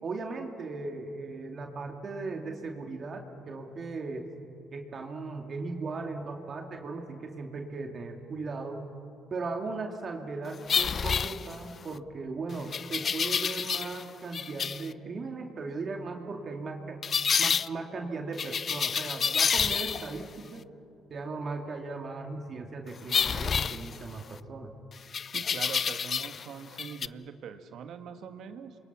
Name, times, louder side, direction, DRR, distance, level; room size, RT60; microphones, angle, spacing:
voice 1, 0.0-4.3 4.7-8.8 9.3-17.0 17.4-20.6 21.1-24.7, right 3 dB, 45° right, 3 dB, 2.6 m, -37 dB
sound 1, 10.7-11.9 12.7-14.0 14.3-14.9 17.0-17.7 18.4-20.2 23.1-24.4 25.1-26.5 26.7-27.1, left 6 dB, 45° left, 0.5 m, -29 dB
voice 2, 25.3-28.8, right 7 dB, 65° right, 8 dB, 1.7 m, -42 dB
28.5 x 23.0 x 6.2 m, 2.7 s
hypercardioid pair, 60°, 0 cm